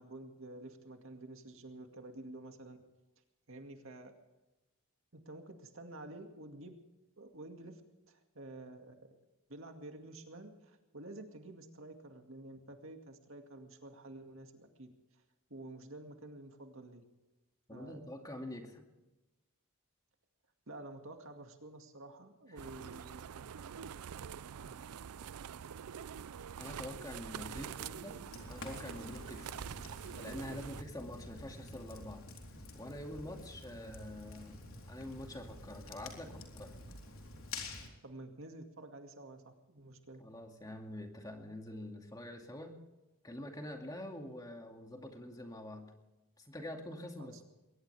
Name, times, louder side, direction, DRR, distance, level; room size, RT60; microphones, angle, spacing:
voice 1, 0.0-2.8 3.5-4.1 5.1-6.8 7.2-7.8 8.1-9.2 9.5-15.2 15.5-17.0 17.7-18.3 20.7-23.4 27.6-28.0 38.0-40.2 47.2-47.4, right 2 dB, 65° right, 5 dB, 2.2 m, -50 dB
voice 2, 17.7-18.8 22.5-22.9 24.6-24.8 26.6-27.7 28.0-28.2 28.5-29.6 30.2-32.2 32.7-36.8 40.2-42.8 43.2-45.9 46.4-47.4, left 1 dB, 15° left, 3 dB, 2.3 m, -46 dB
sound 1, 22.6-30.8, right 8 dB, 85° right, 0.4 m, -46 dB
Fire, 28.3-37.9, left 2 dB, 65° left, 3.8 m, -49 dB
22.0 x 19.0 x 3.5 m, 1.1 s
head